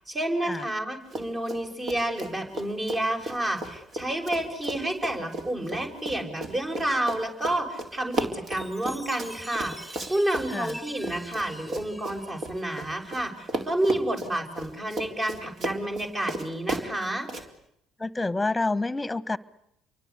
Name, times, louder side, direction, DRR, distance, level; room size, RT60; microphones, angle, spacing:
voice 1, 0.0-9.7 10.1-17.3, right 1 dB, 30° right, 3 dB, 6.6 m, -30 dB
Run, 1.1-1.6 1.9-13.2 13.5-17.4, right 2 dB, 50° right, 4.0 m, -34 dB
Chime, 8.5-13.1, equal, 5° right, 4.8 m, -45 dB
voice 2, 18.0-19.4, left 2 dB, 15° left, 18 dB, 1.4 m, -28 dB
29.0 x 24.0 x 8.4 m, 0.78 s
hypercardioid pair, 55°, 0 cm